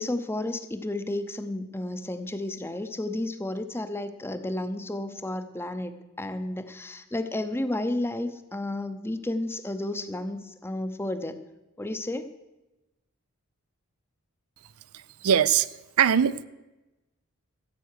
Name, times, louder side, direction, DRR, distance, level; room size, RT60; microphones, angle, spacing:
voice 1, 0.0-11.4 11.8-12.3, left 1 dB, 10° left, 10 dB, 0.7 m, -32 dB
voice 2, 14.9-15.7 16.0-16.4, right 8 dB, 80° right, 16 dB, 0.5 m, -22 dB
14.0 x 8.2 x 6.6 m, 1.0 s
head